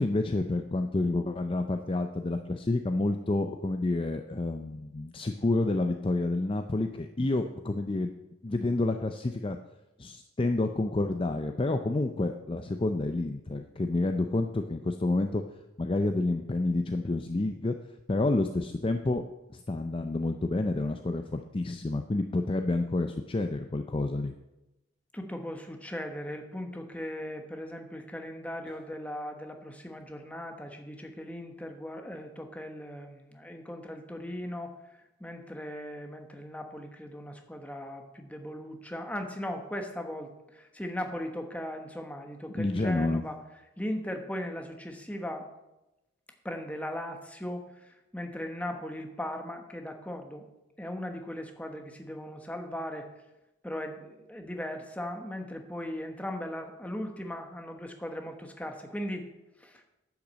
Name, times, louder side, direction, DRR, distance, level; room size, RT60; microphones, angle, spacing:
voice 1, 0.0-8.1 8.4-9.6 10.0-15.4 15.8-17.8 18.1-19.2 19.5-24.3 28.7-28.8 42.5-43.2, left 2 dB, 25° left, 6 dB, 0.5 m, -29 dB
voice 2, 25.1-34.7 35.2-43.4 43.8-45.5 46.4-50.5 50.8-53.1 53.6-59.3 59.6-59.8, left 1 dB, 5° left, 4 dB, 1.1 m, -38 dB
10.0 x 5.9 x 7.4 m, 0.96 s
head